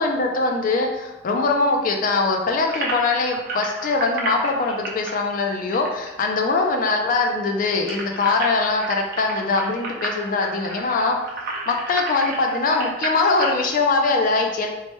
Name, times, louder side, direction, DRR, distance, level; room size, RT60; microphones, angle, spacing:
voice 1, 0.0-11.2 11.7-14.7, left 3 dB, 50° left, 2 dB, 0.4 m, -22 dB
sound 1, 2.7-6.6 6.9-7.0 7.3-13.6, right 3 dB, 55° right, 0.5 m, -31 dB
3.1 x 2.1 x 3.0 m, 0.96 s
head